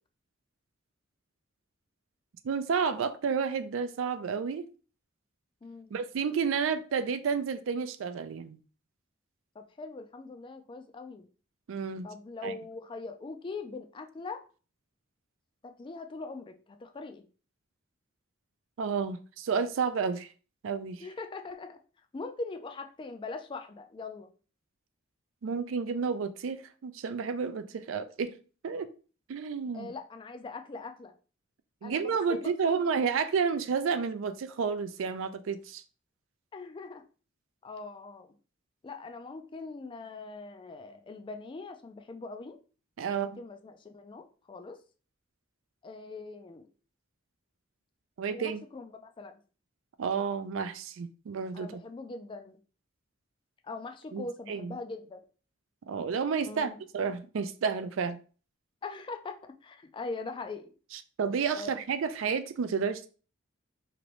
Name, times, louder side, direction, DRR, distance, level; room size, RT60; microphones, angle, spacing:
voice 1, 2.4-4.6 5.9-8.6 11.7-12.1 12.4-12.5 18.8-20.3 20.6-21.0 25.4-28.4 28.6-28.9 29.3-29.9 31.8-35.8 43.0-43.3 48.2-48.6 50.0-51.7 54.1-54.2 54.5-54.7 55.9-58.2 61.2-63.1, right 6 dB, 70° right, 0.4 m, -31 dB
voice 2, 5.6-5.9 9.5-11.3 12.0-14.5 15.6-17.2 21.0-24.3 29.7-31.1 31.8-32.8 36.5-37.0 37.6-38.4 38.8-42.6 43.1-44.8 45.8-46.7 48.3-49.4 51.5-52.6 53.6-55.2 56.4-56.8 58.8-60.7 61.6-61.7, left 3 dB, 25° left, 0.3 m, -42 dB
3.0 x 2.5 x 3.0 m
head